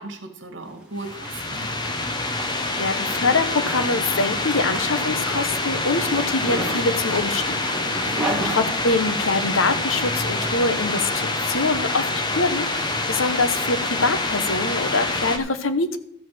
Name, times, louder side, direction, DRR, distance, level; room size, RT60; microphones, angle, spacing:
voice 1, 0.0-1.7 8.0-8.6, right 2 dB, 60° right, 4 dB, 2.1 m, -36 dB
Zipper (clothing), 0.7-9.4, right 1 dB, 5° right, 2.0 m, -35 dB
sound 1, 1.0-15.4, left 2 dB, 20° left, 1.1 m, -26 dB
voice 2, 2.4-7.8 8.0-16.0, left 3 dB, 70° left, 11 dB, 1.0 m, -24 dB
13.5 x 5.1 x 7.7 m, 0.75 s
head